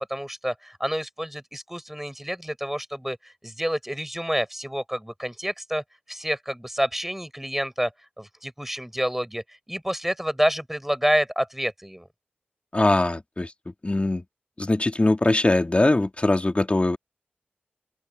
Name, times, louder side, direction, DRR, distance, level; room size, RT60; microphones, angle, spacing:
voice 1, 0.1-5.8 6.1-7.9 8.2-12.1, equal, 5° right, 6.6 m, -28 dB
voice 2, 12.7-13.5 13.8-14.2 14.6-17.0, left 2 dB, 35° left, 2.6 m, -21 dB
open air
cardioid pair, 40°, 4 cm